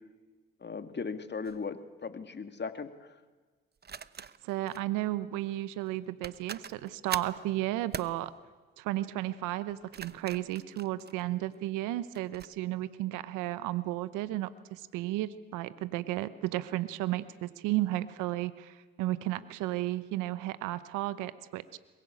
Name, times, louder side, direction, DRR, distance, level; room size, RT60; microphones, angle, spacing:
voice 1, 0.6-3.1, left 5 dB, 35° left, 8 dB, 2.1 m, -38 dB
sound 1, 1.4-1.6 3.8-4.8 5.9-6.0 6.2-7.4 7.9-8.2 9.7-11.6 12.1-12.5, right 6 dB, 35° right, 0.9 m, -42 dB
voice 2, 4.4-8.3 8.8-21.8, right 15 dB, 80° right, 15 dB, 1.0 m, -33 dB
23.5 x 21.0 x 8.6 m, 1.4 s
hypercardioid pair, 55°, 31 cm